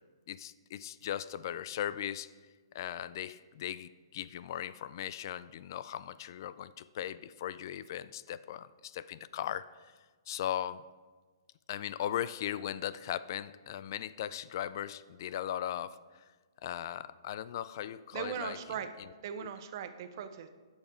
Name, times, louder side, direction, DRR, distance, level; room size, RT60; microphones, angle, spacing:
voice 1, 0.3-2.3 2.7-9.7 10.3-10.8 11.7-16.0 16.6-18.6 19.4-19.5, left 11 dB, 50° left, 17 dB, 0.3 m, -38 dB
voice 2, 18.1-18.9 19.2-20.5, right 8 dB, 50° right, 9 dB, 0.7 m, -39 dB
11.5 x 5.7 x 4.4 m, 1.4 s
hypercardioid pair, 140°, 3 cm